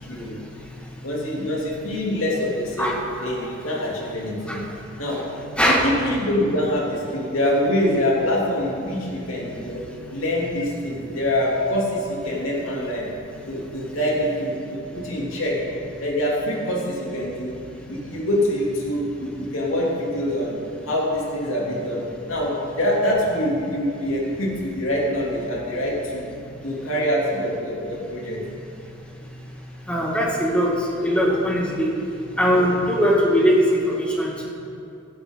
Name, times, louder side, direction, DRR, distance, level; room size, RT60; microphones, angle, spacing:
voice 1, 0.1-0.4 1.0-3.0 3.2-4.6 5.0-5.2 5.7-9.8 10.1-13.1 13.5-15.6 16.0-17.5 17.9-20.6 20.8-26.3 26.6-28.4, left 1 dB, 75° left, -3 dB, 3.0 m, -25 dB
voice 2, 29.9-31.9 32.4-34.5, equal, 5° left, -3 dB, 2.0 m, -20 dB
16.5 x 12.0 x 4.0 m, 2.7 s
head